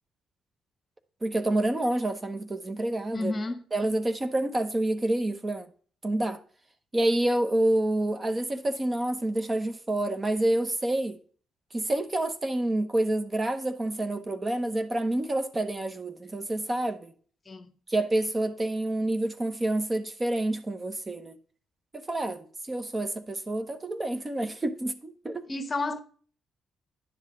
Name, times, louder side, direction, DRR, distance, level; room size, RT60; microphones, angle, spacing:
voice 1, 1.2-3.3 3.7-5.7 6.0-6.4 6.9-11.2 11.7-17.1 17.9-21.4 21.9-25.5, right 1 dB, 25° right, 0.7 m, -28 dB
voice 2, 3.1-3.6 17.5-17.7 25.5-26.0, left 2 dB, 30° left, 0.9 m, -31 dB
10.0 x 5.5 x 3.7 m
cardioid pair, 90°, 0 cm